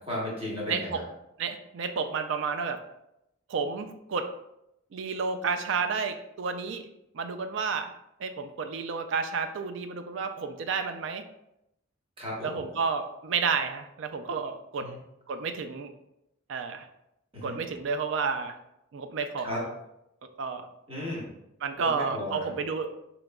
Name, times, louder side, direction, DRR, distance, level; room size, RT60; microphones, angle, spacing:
voice 1, 0.1-1.0 12.2-12.6 14.8-15.0 17.3-17.6 19.4-19.6 20.9-21.3 21.8-22.5, left 1 dB, 30° right, -4 dB, 1.1 m, -34 dB
voice 2, 0.7-1.0 1.4-2.8 3.5-4.3 4.9-6.8 7.1-7.9 8.2-11.3 12.4-14.9 15.3-15.9 16.5-16.9 17.4-18.6 18.9-19.7 20.4-20.7 21.6-22.9, right 5 dB, 65° right, 8 dB, 0.4 m, -31 dB
4.8 x 3.0 x 2.2 m, 0.84 s
head